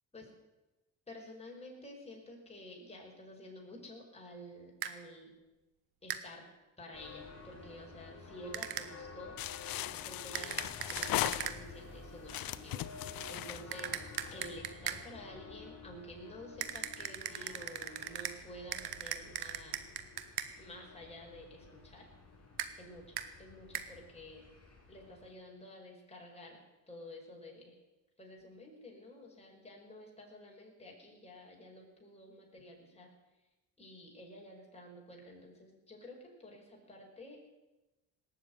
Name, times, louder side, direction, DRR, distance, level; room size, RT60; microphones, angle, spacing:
voice 1, 1.1-5.3 6.0-6.5 6.8-9.4 9.9-19.8 20.6-22.1 22.8-24.4 24.9-26.6 26.9-27.8 28.2-33.1 33.8-37.5, equal, 15° left, -2 dB, 5.3 m, -51 dB
sound 1, 4.8-4.9 6.1-6.2 8.5-8.9 10.3-11.6 13.7-15.0 16.6-18.4 18.7-20.5 22.6-22.7 23.2-23.3 23.7-23.9, right 11 dB, 75° right, 1.2 m, -39 dB
sound 2, 6.9-25.3, left 4 dB, 45° left, 5.8 m, -52 dB
sound 3, 9.4-11.9 12.3-14.5, left 14 dB, 65° left, 0.8 m, -38 dB
18.5 x 7.5 x 9.6 m, 1.0 s
supercardioid pair, 75°, 37 cm